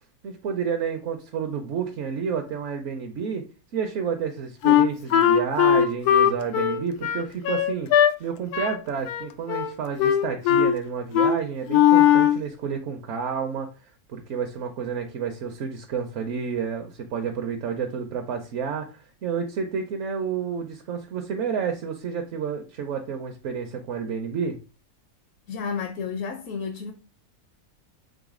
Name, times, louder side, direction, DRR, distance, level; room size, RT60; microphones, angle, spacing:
voice 1, 0.2-3.4 3.7-7.9 8.2-13.7 14.1-24.6, right 6 dB, 65° right, 0.9 m, -30 dB
Wind instrument woodwind instrument, 4.6-8.1 8.5-8.8 9.0-9.7 10.0-10.8 11.1-11.4 11.7-12.4, left 9 dB, 90° left, 1.1 m, -19 dB
voice 2, 25.5-26.9, left 6 dB, 65° left, 1.0 m, -31 dB
4.0 x 3.6 x 3.6 m
omnidirectional pair, 1.6 m